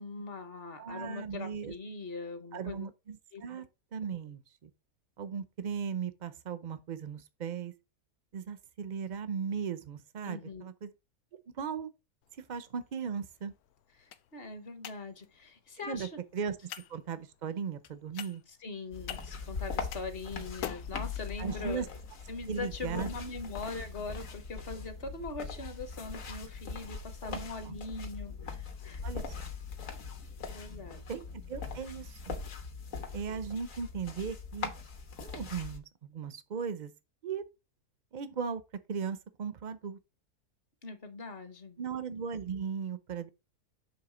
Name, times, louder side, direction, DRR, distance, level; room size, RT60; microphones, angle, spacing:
voice 1, 0.0-2.9 3.3-3.6 10.2-10.7 14.0-16.2 18.6-21.9 22.3-29.0 30.5-31.0 40.8-41.8, left 3 dB, 45° left, 1.0 m, -42 dB
voice 2, 0.8-1.7 2.5-3.6 3.9-4.7 5.2-7.7 8.3-10.9 11.3-11.9 12.5-13.5 15.8-18.4 21.4-21.9 22.5-23.1 27.3-27.4 27.7-27.8 29.0-29.2 31.1-32.4 33.1-34.7 35.2-36.9 37.2-37.4 38.1-38.6 38.9-40.0 41.8-43.3, right 6 dB, 60° right, 0.5 m, -37 dB
sound 1, 12.2-30.1, left 11 dB, 85° left, 1.1 m, -51 dB
sound 2, 18.9-35.8, left 5 dB, 65° left, 1.5 m, -41 dB
7.2 x 3.4 x 4.9 m
omnidirectional pair, 1.6 m